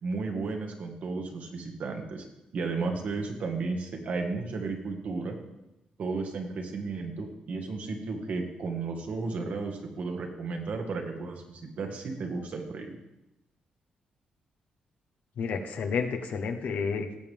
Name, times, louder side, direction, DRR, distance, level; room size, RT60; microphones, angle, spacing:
voice 1, 0.0-2.3 2.5-5.4 6.0-12.9, right 4 dB, 65° right, 3 dB, 1.8 m, -33 dB
voice 2, 15.4-17.2, left 5 dB, 70° left, 5 dB, 1.2 m, -30 dB
17.5 x 7.4 x 3.6 m, 0.91 s
cardioid pair, 120°, 3 cm